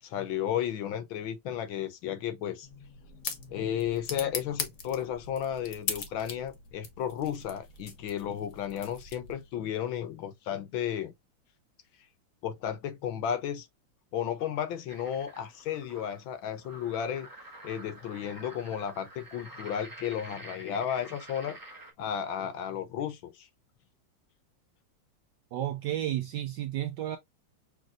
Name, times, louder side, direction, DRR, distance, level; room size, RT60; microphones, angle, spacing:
voice 1, 0.0-2.7 3.5-11.1 12.4-13.7 14.1-17.3 17.6-21.6 22.0-23.5, left 9 dB, 75° left, 1.5 m, -33 dB
sound 1, 2.6-9.5, left 5 dB, 50° left, 1.2 m, -40 dB
sound 2, 14.9-21.9, right 1 dB, 15° right, 0.9 m, -49 dB
voice 2, 25.5-27.2, right 12 dB, 75° right, 1.0 m, -32 dB
6.0 x 3.2 x 2.5 m
omnidirectional pair, 2.3 m